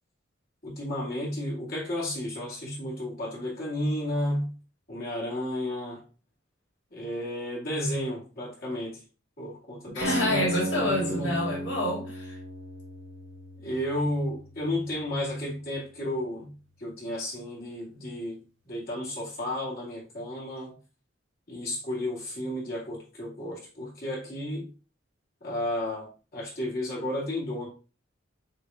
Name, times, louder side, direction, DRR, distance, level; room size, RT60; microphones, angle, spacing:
voice 1, 0.6-4.5 4.9-6.0 6.9-9.0 9.4-11.3 13.6-16.5 16.8-18.4 18.6-20.8 21.5-24.7 25.4-27.7, left 1 dB, 50° left, 2.1 m, -32 dB
voice 2, 9.9-12.4, left 1 dB, 65° left, 2.1 m, -28 dB
sound 1, 10.0-16.0, right 1 dB, 70° right, 0.8 m, -36 dB
6.5 x 2.4 x 2.7 m
head